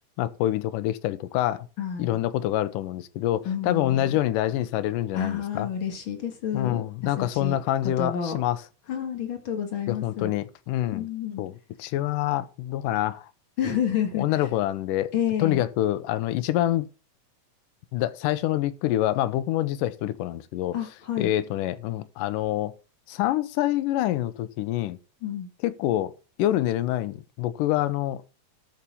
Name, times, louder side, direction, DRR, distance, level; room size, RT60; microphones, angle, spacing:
voice 1, 0.2-1.7 2.0-5.7 6.5-8.6 9.9-11.1 11.4-11.5 11.8-13.3 14.1-15.1 15.4-16.9 17.9-20.7 21.2-22.7 23.1-25.0 25.6-26.1 26.4-28.2, left 13 dB, 80° left, 2.3 m, -26 dB
voice 2, 1.8-2.2 3.4-4.1 5.1-6.8 7.2-7.6 7.8-8.4 8.9-10.3 10.9-11.4 13.6-14.3 15.1-15.6 20.7-21.3 25.2-25.5, left 8 dB, 40° left, 2.2 m, -29 dB
13.0 x 4.4 x 5.5 m
omnidirectional pair, 4.0 m